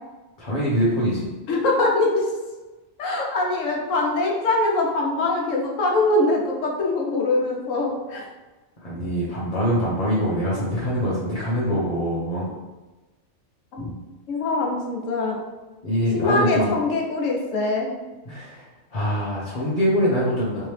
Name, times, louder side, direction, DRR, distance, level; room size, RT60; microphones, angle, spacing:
voice 1, 0.4-1.3 8.8-12.5 13.8-13.9 15.8-16.7 18.2-18.6 18.9-20.7, equal, 35° left, -8 dB, 0.8 m, -24 dB
voice 2, 1.5-2.3 3.0-8.2 13.7-13.8 14.3-15.4 16.1-17.9 20.6-20.7, left 2 dB, 85° left, 0 dB, 1.1 m, -23 dB
3.4 x 2.9 x 3.2 m, 1.2 s
omnidirectional pair, 1.3 m